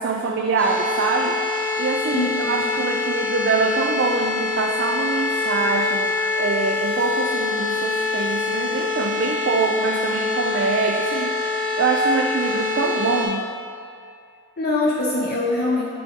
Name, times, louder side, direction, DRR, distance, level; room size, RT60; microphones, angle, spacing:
voice 1, 0.0-1.4 1.8-13.5, right 4 dB, 55° right, 2 dB, 0.3 m, -24 dB
sound 1, 0.6-13.3, left 3 dB, 5° left, 0.8 m, -25 dB
voice 2, 2.1-2.6 14.6-15.9, left 2 dB, 45° left, -4 dB, 0.5 m, -23 dB
7.6 x 4.1 x 3.5 m, 2.4 s
head